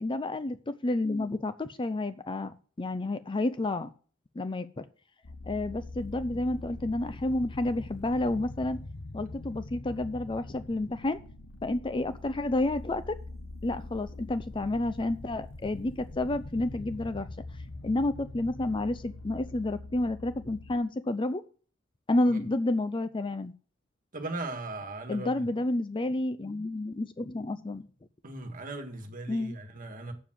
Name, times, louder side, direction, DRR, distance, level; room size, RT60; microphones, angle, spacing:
voice 1, 0.0-3.9 4.4-4.9 5.5-8.8 9.1-11.2 11.6-13.2 13.6-17.3 17.8-21.4 22.1-23.5 25.1-27.9 29.3-29.6, left 2 dB, 25° left, 0.5 m, -30 dB
sound 1, 5.2-20.8, left 2 dB, 90° left, 1.1 m, -43 dB
voice 2, 24.1-25.5 28.2-30.1, right 2 dB, 45° right, 1.7 m, -38 dB
7.1 x 7.1 x 7.5 m
head